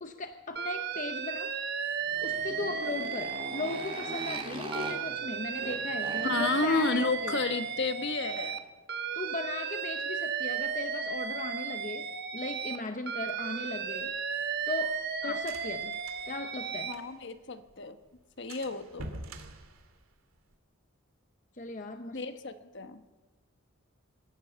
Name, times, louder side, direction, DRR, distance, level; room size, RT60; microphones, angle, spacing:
voice 1, 0.0-1.6 2.2-7.4 9.1-14.2 14.7-16.0 16.2-16.9 21.5-22.2, left 3 dB, 35° left, 7 dB, 0.8 m, -37 dB
Alarm, 0.6-4.4 4.7-8.6 8.9-12.8 13.1-16.9, right 6 dB, 50° right, 1.2 m, -34 dB
Motorcycle, 2.0-8.7, right 2 dB, 25° right, 2.7 m, -43 dB
voice 2, 6.2-8.6 15.3-15.4 16.8-18.0 18.4-19.1 22.1-23.0, left 3 dB, 55° left, 9 dB, 1.2 m, -31 dB
sound 1, 14.0-17.4 17.7-17.8 18.1-18.2 18.5-20.5, right 1 dB, 75° right, 2.5 m, -46 dB
25.0 x 16.0 x 6.9 m, 1.2 s
head